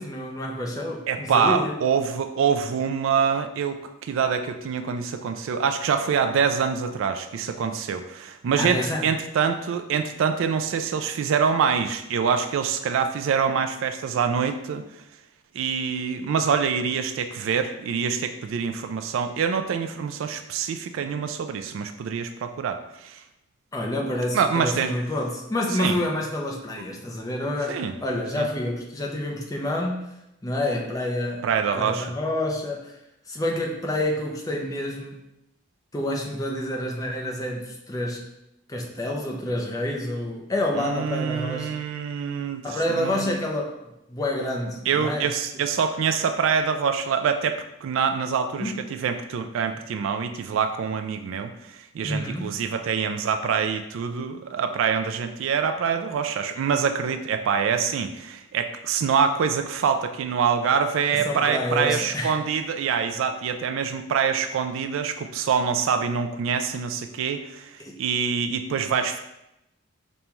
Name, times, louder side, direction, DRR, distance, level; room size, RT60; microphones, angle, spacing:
voice 1, 0.0-1.7 8.6-9.1 23.7-30.1 30.4-33.0 33.3-35.2 35.9-38.3 38.7-41.8 42.6-43.8 44.1-45.3 48.6-48.8 52.0-52.6 61.1-62.4 67.8-68.0, left 1 dB, 15° left, -1 dB, 0.5 m, -28 dB
voice 2, 1.1-14.8 15.5-23.2 24.3-24.9 25.8-26.0 27.7-27.9 28.4-28.5 31.4-32.1 40.8-43.3 44.9-69.2, right 6 dB, 70° right, 7 dB, 0.3 m, -25 dB
5.2 x 2.2 x 3.0 m, 0.86 s
head